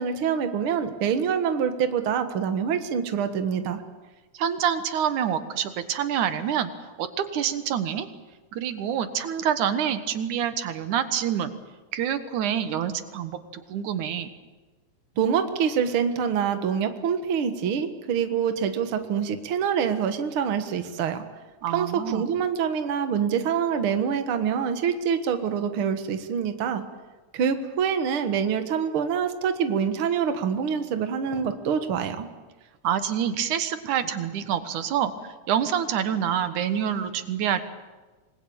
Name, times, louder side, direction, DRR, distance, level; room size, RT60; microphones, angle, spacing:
voice 1, 0.0-3.8 15.2-21.2 21.7-26.8 27.3-32.3, right 7 dB, 50° right, 8 dB, 2.1 m, -25 dB
voice 2, 4.3-6.7 7.0-8.1 8.5-11.5 11.9-13.4 13.7-14.3 21.6-22.2 32.8-35.1 35.5-37.6, right 9 dB, 85° right, 10 dB, 2.8 m, -26 dB
26.5 x 20.5 x 8.8 m, 1.2 s
omnidirectional pair, 3.4 m